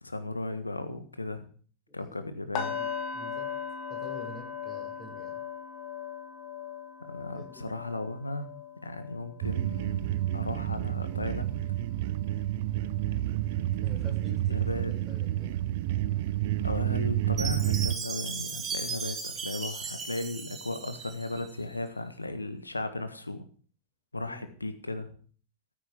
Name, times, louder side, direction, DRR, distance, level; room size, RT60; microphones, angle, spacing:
voice 1, 0.0-1.4 1.9-2.7 7.1-8.5 8.8-11.6 14.5-14.9 16.6-23.4 24.1-25.1, left 2 dB, 80° left, 10 dB, 1.6 m, -36 dB
voice 2, 1.9-3.5 3.9-5.4 7.3-7.8 13.8-15.5 24.3-24.5, left 1 dB, 10° left, -1 dB, 7.1 m, -48 dB
sound 1, 2.5-12.5 12.8-13.1 13.5-13.7, left 7 dB, 40° left, 2.8 m, -39 dB
sound 2, 9.4-17.9, right 14 dB, 50° right, 0.6 m, -29 dB
Chime, 17.4-21.5, right 5 dB, 20° right, 2.2 m, -37 dB
14.5 x 8.5 x 7.1 m, 0.43 s
figure-of-eight pair, 90°, 0 cm